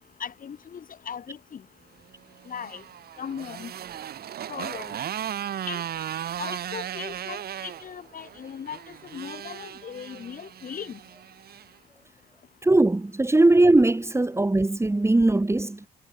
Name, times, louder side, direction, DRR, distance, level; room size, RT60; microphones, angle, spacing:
voice 1, 0.2-1.7 2.4-2.8 3.2-3.7 4.5-5.0 5.7-5.8 6.4-11.0, left 7 dB, 45° left, 4.9 m, -38 dB
Motorcycle, 2.3-11.7, right 10 dB, 55° right, 3.4 m, -36 dB
voice 2, 12.6-15.8, right 2 dB, 15° right, 2.4 m, -20 dB
figure-of-eight pair, 45°, 19 cm